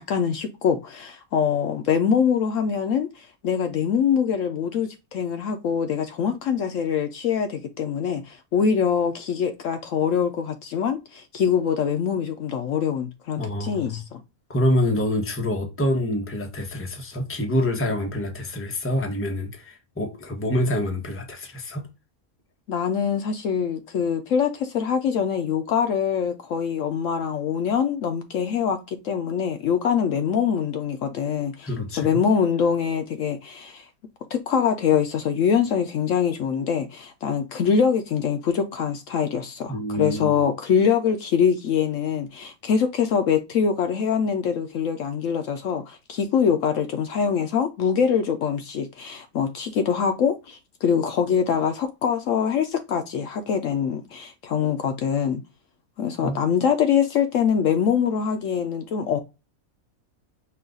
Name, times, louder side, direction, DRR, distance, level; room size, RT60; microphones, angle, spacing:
voice 1, 0.0-14.2 22.7-31.7 32.0-33.9 34.3-55.4 56.0-59.2, left 7 dB, 70° left, 0.9 m, -24 dB
voice 2, 13.4-14.0 14.5-21.8 31.6-32.2 39.7-40.3 56.2-56.4, left 1 dB, 10° left, 0.8 m, -26 dB
5.5 x 2.3 x 3.7 m
omnidirectional pair, 1.5 m